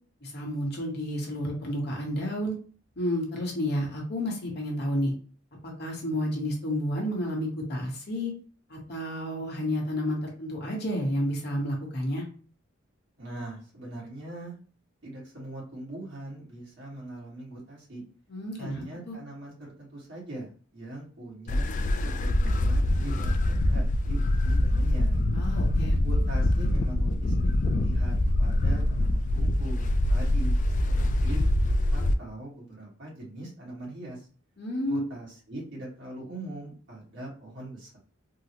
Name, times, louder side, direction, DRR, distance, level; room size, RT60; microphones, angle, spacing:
voice 1, 0.2-2.6 3.0-5.1 5.6-8.3 8.7-12.2 18.3-19.2 25.3-26.0 34.6-35.0, equal, 55° left, 0 dB, 1.0 m, -31 dB
voice 2, 13.2-14.5 15.0-18.0 18.5-25.2 25.9-30.6 30.8-31.4 31.9-34.3 34.8-38.0, right 1 dB, 65° right, -5 dB, 1.6 m, -41 dB
sound 1, 21.5-32.1, left 1 dB, 40° left, 0.3 m, -24 dB
3.7 x 2.1 x 2.9 m, 0.41 s
head